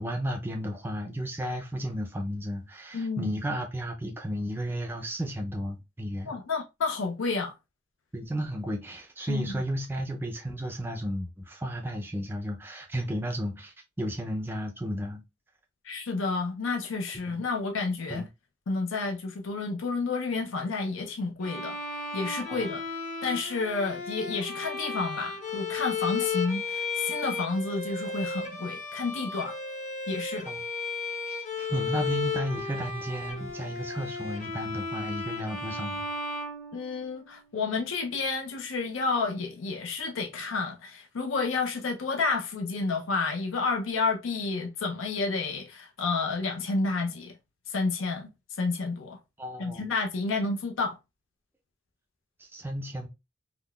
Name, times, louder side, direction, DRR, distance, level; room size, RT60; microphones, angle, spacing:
voice 1, 0.0-6.3 8.1-15.2 17.3-17.4 18.1-18.3 22.5-22.7 30.4-30.6 31.3-36.1 49.4-49.9 52.4-53.1, equal, 10° right, 0.4 m, -33 dB
voice 2, 2.9-3.4 6.2-7.5 9.3-9.6 15.8-18.3 18.7-21.8 22.1-22.8 23.2-29.6 30.1-30.5 36.7-47.3 47.7-48.3 48.6-49.2 49.6-51.0, left 4 dB, 75° left, 0.5 m, -30 dB
Bowed string instrument, 21.4-37.3, left 4 dB, 40° left, 0.8 m, -34 dB
3.6 x 2.3 x 2.2 m
head